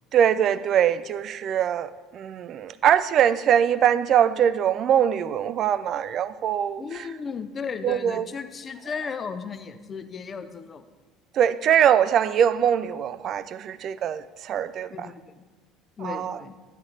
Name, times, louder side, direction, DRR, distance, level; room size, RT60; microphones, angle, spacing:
voice 1, 0.1-6.8 7.8-8.3 11.3-15.1 16.0-16.4, right 9 dB, 45° right, 15 dB, 0.4 m, -22 dB
voice 2, 6.8-10.8 14.9-15.4 16.0-16.6, left 5 dB, 30° left, 10 dB, 0.6 m, -35 dB
11.5 x 8.3 x 3.2 m, 1.3 s
figure-of-eight pair, 60°, 0 cm